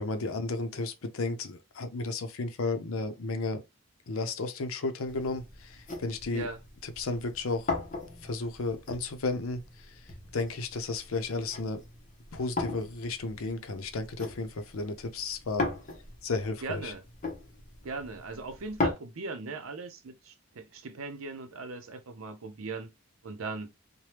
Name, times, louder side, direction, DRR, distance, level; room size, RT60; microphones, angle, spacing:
voice 1, 0.0-3.6 4.1-6.5 6.8-7.7 8.2-9.9 10.3-11.8 12.3-15.7 16.2-16.9, left 3 dB, 90° left, 0.6 m, -33 dB
sound 1, 5.1-18.9, left 3 dB, 40° left, 0.7 m, -39 dB
voice 2, 16.6-17.0 17.8-22.9 23.2-23.7, right 3 dB, 85° right, 0.6 m, -39 dB
3.3 x 2.1 x 2.8 m
head